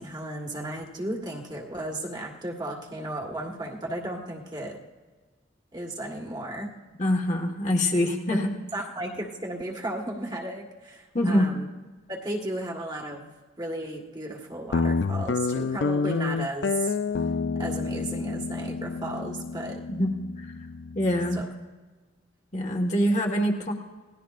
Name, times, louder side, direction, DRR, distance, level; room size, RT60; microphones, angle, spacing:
voice 1, 0.0-4.8 5.7-6.8 8.3-11.7 12.1-17.0 17.6-19.8 21.3-21.5, right 1 dB, 20° right, 1 dB, 1.6 m, -35 dB
voice 2, 7.0-8.5 11.1-11.4 19.9-20.1 20.9-21.4 22.5-23.7, equal, 35° left, 1 dB, 1.6 m, -24 dB
Guitar, 14.7-21.4, left 4 dB, 60° left, 0.4 m, -29 dB
28.0 x 18.5 x 2.5 m, 1.3 s
head